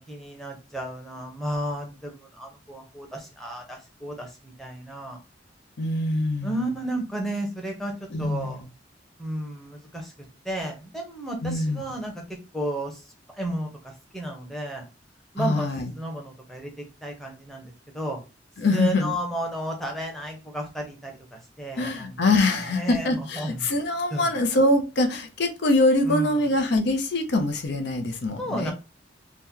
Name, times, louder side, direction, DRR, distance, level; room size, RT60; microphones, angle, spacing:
voice 1, 0.0-5.2 6.4-7.9 8.2-8.6 9.2-10.1 10.4-12.1 12.5-13.0 13.3-14.8 15.3-15.7 16.0-18.2 18.7-22.1 22.7-23.1 23.3-23.7 24.1-24.3 26.0-26.5 28.4-28.7, right 1 dB, ahead, 0.7 m, -33 dB
voice 2, 5.8-6.7 8.1-8.6 11.4-11.8 15.4-15.9 18.6-19.1 21.8-28.7, left 2 dB, 65° left, 0.5 m, -24 dB
2.9 x 2.1 x 3.6 m
head